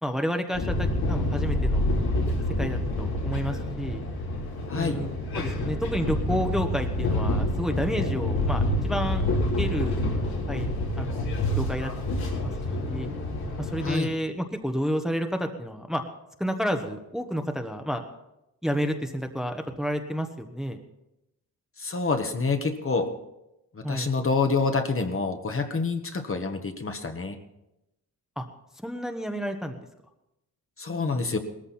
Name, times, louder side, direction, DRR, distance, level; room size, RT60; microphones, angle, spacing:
voice 1, 0.0-1.9 2.6-4.0 4.7-9.2 9.6-10.1 10.5-12.5 12.8-13.1 13.6-16.0 16.4-18.0 18.6-20.8 23.8-24.1 28.4-28.5 28.8-29.8, equal, ahead, 5 dB, 1.3 m, -30 dB
sound 1, 0.5-13.9, left 1 dB, 75° left, 3.8 m, -27 dB
voice 2, 4.7-5.0 13.8-14.1 21.8-23.1 23.7-27.4 30.8-31.4, left 4 dB, 35° left, 5 dB, 1.5 m, -27 dB
18.0 x 14.0 x 4.3 m, 0.89 s
cardioid pair, 85°, 37 cm